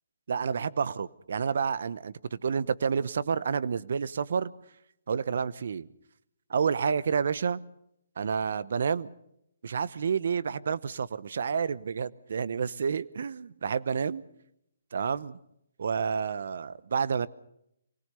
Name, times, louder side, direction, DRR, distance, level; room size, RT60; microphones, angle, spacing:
voice 1, 0.3-4.5 5.1-5.9 6.5-7.6 8.2-9.1 9.6-14.2 14.9-15.4 15.8-17.3, right 6 dB, 65° right, 18 dB, 0.9 m, -29 dB
24.0 x 18.0 x 6.8 m, 0.77 s
hypercardioid pair, 150°, 0 cm